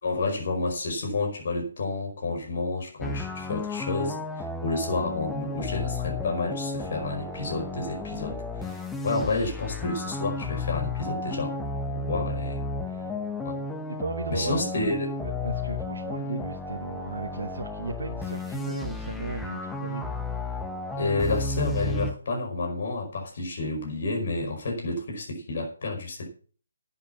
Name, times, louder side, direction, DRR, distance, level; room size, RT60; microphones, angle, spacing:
voice 1, 0.0-11.6 11.9-12.6 13.4-13.6 14.3-15.1 21.0-26.3, left 3 dB, 50° left, 5.2 m, -30 dB
sound 1, 3.0-22.1, left 2 dB, 5° left, 1.0 m, -33 dB
voice 2, 13.9-14.9 15.2-20.1 21.2-21.3, right 3 dB, 75° right, 1.2 m, -36 dB
10.5 x 8.8 x 7.2 m
figure-of-eight pair, 145°, 0 cm